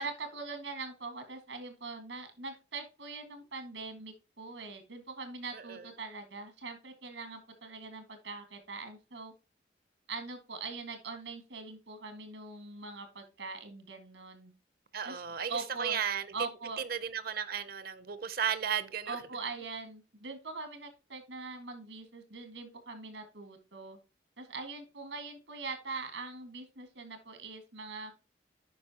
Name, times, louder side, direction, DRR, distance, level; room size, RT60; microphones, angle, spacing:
voice 1, 0.0-9.3 10.1-14.5 15.0-15.2 15.5-16.0 16.3-16.8 19.1-24.0 24.4-28.1, right 3 dB, 85° right, 1.9 m, -42 dB
voice 2, 5.5-5.9 14.9-16.3 16.8-19.2, right 8 dB, 55° right, 0.7 m, -34 dB
9.2 x 5.5 x 2.9 m
head